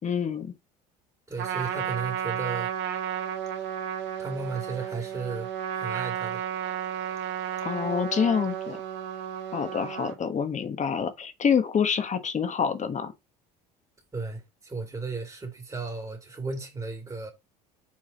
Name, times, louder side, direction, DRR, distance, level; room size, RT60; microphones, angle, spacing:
voice 1, 0.0-0.5 7.6-8.8 9.5-13.1, left 7 dB, 35° left, 1.5 m, -27 dB
voice 2, 1.3-2.7 4.2-6.4 14.1-17.3, right 4 dB, 20° right, 2.3 m, -35 dB
Trumpet, 1.4-10.2, right 9 dB, 60° right, 1.7 m, -33 dB
6.3 x 4.0 x 4.0 m
hypercardioid pair, 80°, 20 cm